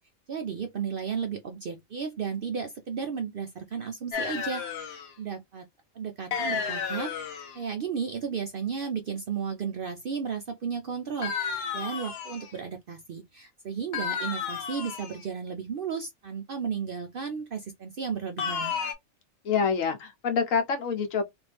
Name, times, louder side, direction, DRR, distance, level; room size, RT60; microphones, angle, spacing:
voice 1, 0.3-5.7 5.9-7.1 7.5-18.8, right 6 dB, 65° right, 0.5 m, -34 dB
sound 1, 4.1-5.1 6.3-7.6 11.2-12.5 13.9-15.2 18.4-18.9, left 6 dB, 55° left, 0.8 m, -32 dB
voice 2, 19.4-21.2, left 6 dB, 75° left, 1.2 m, -26 dB
2.6 x 2.5 x 3.3 m
omnidirectional pair, 1.4 m